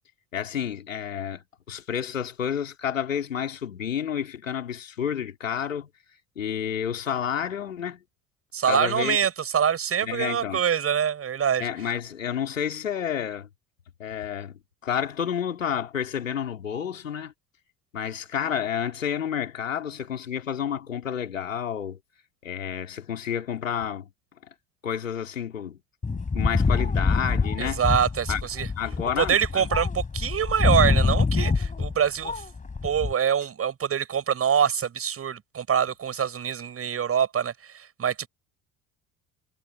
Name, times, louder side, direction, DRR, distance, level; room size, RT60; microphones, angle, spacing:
voice 1, 0.3-5.9 6.4-8.0 8.7-9.2 10.0-10.6 11.6-13.5 14.0-17.3 17.9-22.0 22.4-24.1 24.8-25.8 26.1-27.8 28.3-28.4 28.8-29.7, left 8 dB, 80° left, 3.7 m, -30 dB
voice 2, 8.5-11.7 27.6-28.7 29.2-32.4 32.8-38.3, right 8 dB, 35° right, 7.9 m, -25 dB
sound 1, 26.0-33.1, left 4 dB, 20° left, 4.5 m, -25 dB
figure-of-eight pair, 65°, 38 cm